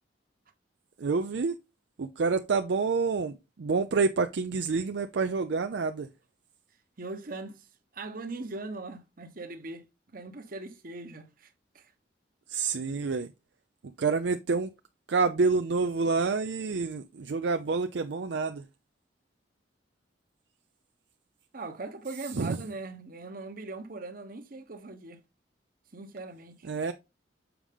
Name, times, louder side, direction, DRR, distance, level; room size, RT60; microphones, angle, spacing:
voice 1, 1.0-1.6 2.0-3.3 3.6-6.1 12.5-13.3 14.0-14.7 15.1-18.6 22.4-22.6 26.6-26.9, right 4 dB, 70° right, 0.5 m, -28 dB
voice 2, 7.0-7.7 7.9-9.8 10.1-11.5 11.7-11.9 21.5-25.2 25.9-26.7, right 3 dB, 50° right, 1.1 m, -40 dB
7.1 x 4.8 x 3.6 m
head